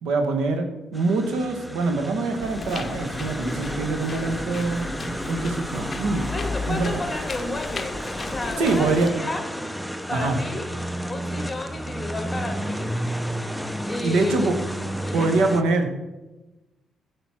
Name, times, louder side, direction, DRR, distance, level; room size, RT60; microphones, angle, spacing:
voice 1, 0.0-6.3 6.7-6.9 8.6-9.1 10.1-10.4 14.0-14.5 15.1-15.9, right 3 dB, 85° right, 6 dB, 1.3 m, -24 dB
sound 1, 0.9-15.6, equal, ahead, 0.6 m, -32 dB
sound 2, 2.4-9.1, left 4 dB, 35° left, 0.8 m, -34 dB
voice 2, 6.3-9.4 10.1-10.7 11.1-12.9 13.9-14.5 15.0-15.3, left 2 dB, 20° left, 5 dB, 1.8 m, -32 dB
11.0 x 5.2 x 6.0 m, 1.1 s
cardioid pair, 90°, 0 cm